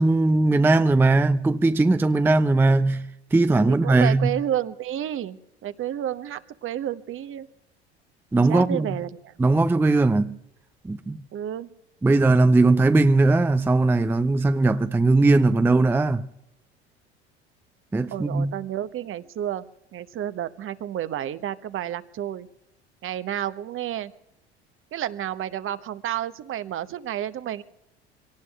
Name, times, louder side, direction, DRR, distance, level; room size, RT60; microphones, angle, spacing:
voice 1, 0.0-4.4 8.3-9.0 9.4-10.3 10.8-11.2 12.0-16.3 17.9-18.5, right 2 dB, 5° right, 0.5 m, -19 dB
voice 2, 3.7-7.5 8.5-9.4 11.3-11.7 18.1-19.6 19.9-22.5 23.0-24.1 24.9-27.6, right 11 dB, 40° right, 1.0 m, -30 dB
26.0 x 18.0 x 2.4 m
figure-of-eight pair, 70°, 33 cm